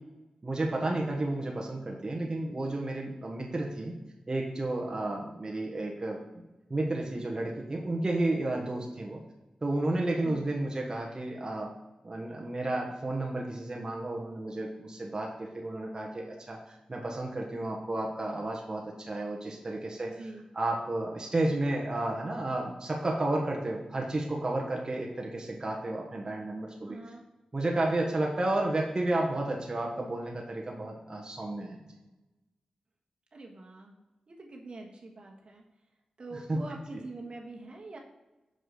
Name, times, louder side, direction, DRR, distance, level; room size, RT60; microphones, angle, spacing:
voice 1, 0.4-3.9 4.3-6.2 6.7-9.2 9.6-11.7 12.0-20.1 20.5-27.0 27.5-31.8 36.5-36.6, right 2 dB, 35° right, -1 dB, 1.3 m, -32 dB
voice 2, 20.0-20.4 26.8-27.2 33.3-35.6 36.2-38.0, right 2 dB, 55° right, 0 dB, 1.4 m, -44 dB
6.5 x 5.0 x 3.9 m, 1.0 s
cardioid pair, 55°, 2 cm